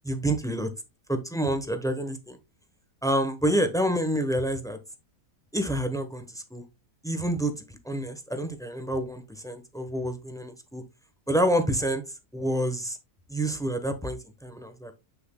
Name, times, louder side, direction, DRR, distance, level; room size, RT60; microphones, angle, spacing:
voice 1, 0.0-0.7 1.1-2.4 3.0-4.8 5.5-6.6 7.0-10.8 11.3-12.0 12.3-13.0 13.3-14.9, right 1 dB, 5° left, 7 dB, 0.7 m, -28 dB
7.9 x 6.8 x 2.2 m, 0.24 s
omnidirectional pair, 1.7 m